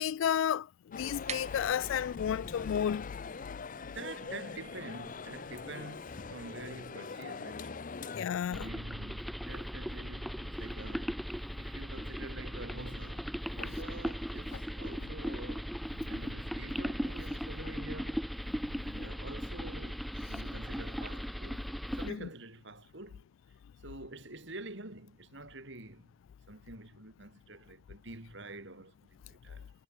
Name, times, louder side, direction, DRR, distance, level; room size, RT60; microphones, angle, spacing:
voice 1, 0.0-3.1 8.1-8.7 13.6-13.7 22.1-22.3, left 9 dB, 75° left, 0.3 m, -32 dB
sound 1, 0.9-8.3, left 4 dB, 45° left, 0.7 m, -43 dB
sound 2, 1.0-7.0, right 7 dB, 35° right, 1.7 m, -50 dB
voice 2, 3.7-7.8 8.4-11.2 11.6-15.7 16.1-21.7 21.9-23.3 23.8-26.1 26.5-29.7, right 2 dB, 65° right, 5.0 m, -47 dB
sound 3, 8.5-22.1, equal, ahead, 0.9 m, -38 dB
head